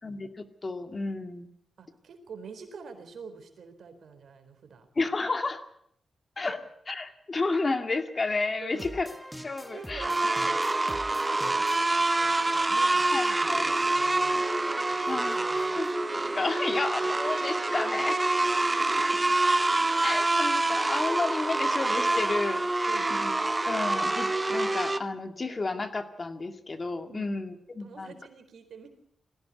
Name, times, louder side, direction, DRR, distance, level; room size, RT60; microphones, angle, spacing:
voice 1, 0.0-1.5 5.0-5.6 6.4-6.6 6.9-9.1 9.4-10.1 13.1-13.6 15.1-15.4 15.7-15.9 16.3-18.2 20.0-23.3 23.7-28.1, left 3 dB, 40° left, 8 dB, 2.2 m, -31 dB
voice 2, 1.8-4.9 6.4-6.5 8.6-9.0 9.7-14.4 15.0-15.9 18.4-19.2 22.9-23.1 27.1-27.5 27.8-28.9, right 5 dB, 75° right, 7 dB, 4.0 m, -46 dB
sound 1, 8.7-16.0, equal, 5° right, 1.8 m, -47 dB
sound 2, 10.0-25.0, right 2 dB, 25° right, 1.1 m, -26 dB
20.0 x 16.5 x 8.3 m, 0.70 s
cardioid pair, 60°, 0 cm